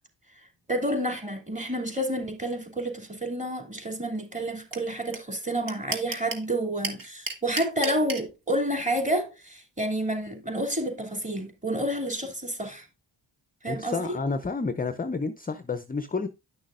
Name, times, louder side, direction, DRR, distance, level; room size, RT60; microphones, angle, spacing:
voice 1, 0.4-12.9 13.6-14.0, right 1 dB, 15° right, 2.8 m, -29 dB
sound 1, 4.7-4.8 5.1-5.2 5.4-6.4 6.8-8.2, right 4 dB, 45° right, 1.7 m, -31 dB
voice 2, 13.7-16.3, left 4 dB, 20° left, 0.6 m, -30 dB
10.5 x 6.2 x 2.5 m
cardioid pair, 70°, 45 cm